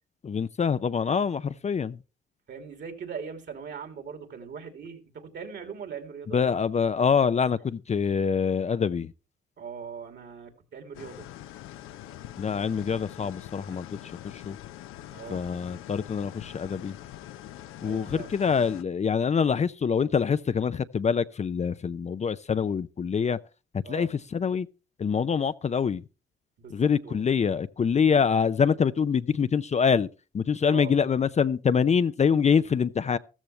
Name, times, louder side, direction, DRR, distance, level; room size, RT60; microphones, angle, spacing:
voice 1, 0.2-2.0 6.3-9.1 12.4-13.9 14.4-14.6 15.3-16.9 17.8-23.4 23.9-24.7 25.0-26.0 26.7-30.1 30.3-33.2, left 6 dB, 35° left, 0.5 m, -25 dB
voice 2, 2.5-6.6 9.6-11.3 13.7-13.8 15.1-15.5 17.8-18.4 23.8-24.1 26.6-27.2 30.6-31.0, right 6 dB, 60° right, 2.9 m, -40 dB
sound 1, 10.9-18.8, left 13 dB, 80° left, 0.8 m, -44 dB
14.0 x 13.5 x 3.2 m
cardioid pair, 75°, 21 cm